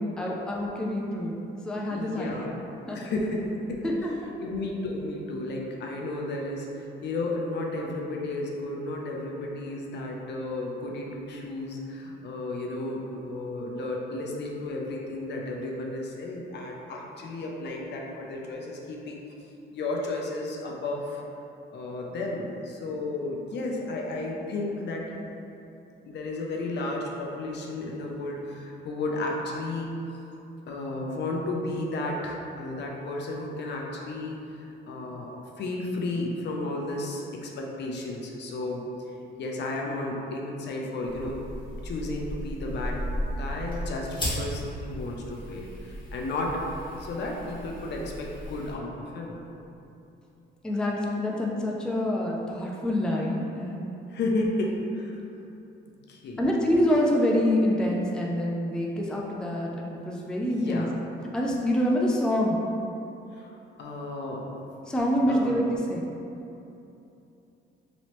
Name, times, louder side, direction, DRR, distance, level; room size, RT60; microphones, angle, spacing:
voice 1, 0.0-1.3 1.6-2.6 2.9-3.0 3.8-4.1 50.6-53.9 54.3-54.5 56.4-60.9 61.3-62.6 64.9-66.1, left 1 dB, 5° left, -2 dB, 0.4 m, -26 dB
voice 2, 1.9-2.5 2.9-3.9 4.4-19.2 19.7-21.2 21.7-25.2 26.1-29.9 30.7-38.8 39.4-41.5 41.8-43.0 43.3-46.6 47.0-49.4 54.1-55.2 56.1-56.4 60.4-60.9 63.3-64.6 65.3-65.6, left 2 dB, 60° left, -1 dB, 0.5 m, -33 dB
sound 1, 41.0-48.7, equal, 25° left, 1.2 m, -36 dB
3.1 x 2.8 x 3.0 m, 2.9 s
cardioid pair, 90°, 20 cm